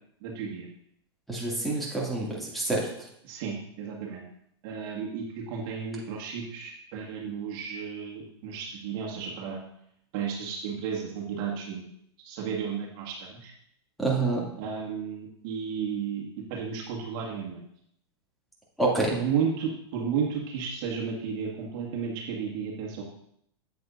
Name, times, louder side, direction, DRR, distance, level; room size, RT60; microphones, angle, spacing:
voice 1, 0.2-0.7 3.2-4.2 4.6-9.6 10.1-11.9 12.2-13.5 14.6-17.6 19.1-23.0, right 6 dB, 55° right, -2 dB, 1.8 m, -33 dB
voice 2, 1.3-2.9 14.0-14.5 18.8-19.1, right 2 dB, ahead, -5 dB, 2.4 m, -27 dB
8.3 x 7.8 x 2.6 m, 0.70 s
hypercardioid pair, 120°, 14 cm